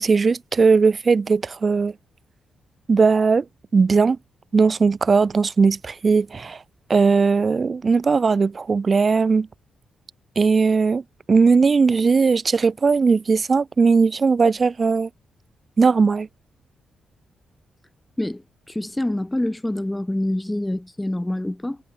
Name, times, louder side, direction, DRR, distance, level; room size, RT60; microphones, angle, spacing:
voice 1, 0.0-1.9 2.9-3.4 3.7-4.2 4.5-6.6 6.9-9.5 10.4-11.0 11.3-15.1 15.8-16.3, right 4 dB, 45° right, 0.6 m, -18 dB
voice 2, 18.2-21.8, left 1 dB, 10° left, 2.0 m, -26 dB
supercardioid pair, 60°, 0 cm